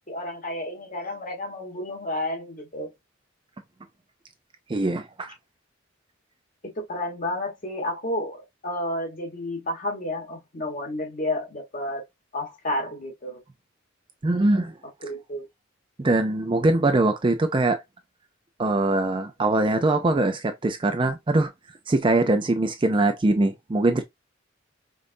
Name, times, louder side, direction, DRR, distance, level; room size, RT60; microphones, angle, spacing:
voice 1, 0.1-2.9 6.6-12.0 12.3-13.4 15.0-15.5, left 1 dB, 40° left, 1.5 m, -31 dB
voice 2, 4.7-5.3 14.2-14.8 16.0-17.8 18.6-21.5 21.9-24.0, right 2 dB, 25° right, 0.4 m, -22 dB
5.1 x 2.5 x 2.6 m
head